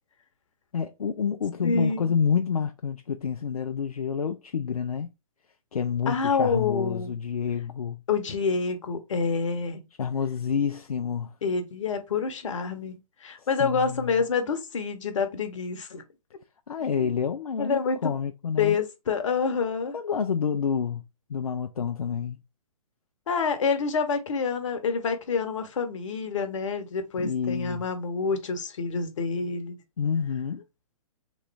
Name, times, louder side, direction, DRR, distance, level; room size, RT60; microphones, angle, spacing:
voice 1, 0.7-5.1 5.7-8.0 10.0-11.3 13.4-14.2 16.7-18.8 19.9-21.0 21.3-22.4 27.2-27.8 30.0-30.6, left 6 dB, 75° left, 0.4 m, -28 dB
voice 2, 1.6-2.2 6.1-7.2 8.1-9.8 11.4-16.0 16.9-17.1 17.6-18.1 18.6-20.0 23.3-29.8, left 5 dB, 55° left, 0.9 m, -27 dB
3.6 x 3.1 x 3.2 m
figure-of-eight pair, 125°, 19 cm